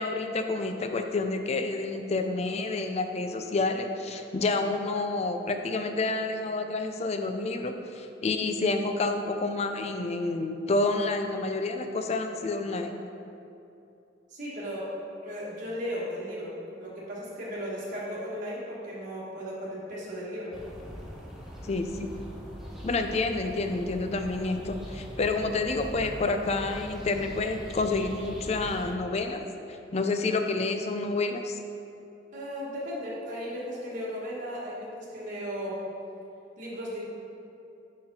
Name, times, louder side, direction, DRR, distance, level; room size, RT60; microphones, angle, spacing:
voice 1, 0.0-13.0 21.6-22.1 22.8-29.4 29.7-31.6, left 3 dB, 35° left, 6 dB, 0.4 m, -29 dB
voice 2, 14.3-14.9 15.2-20.5 32.3-35.8 36.6-37.0, equal, 45° right, -7 dB, 1.3 m, -36 dB
sound 1, 20.5-28.9, equal, ahead, 0.8 m, -42 dB
5.0 x 4.8 x 5.2 m, 2.7 s
head